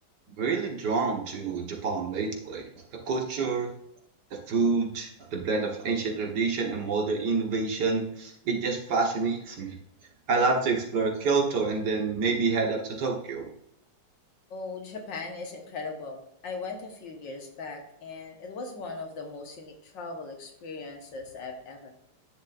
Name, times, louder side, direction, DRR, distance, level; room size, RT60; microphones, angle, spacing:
voice 1, 0.4-2.7 3.1-3.7 4.5-9.8 10.3-13.5, right 4 dB, 60° right, 1 dB, 1.9 m, -27 dB
voice 2, 14.5-21.9, left 3 dB, 70° left, 3 dB, 2.0 m, -39 dB
10.0 x 7.1 x 2.5 m, 0.76 s
omnidirectional pair, 2.1 m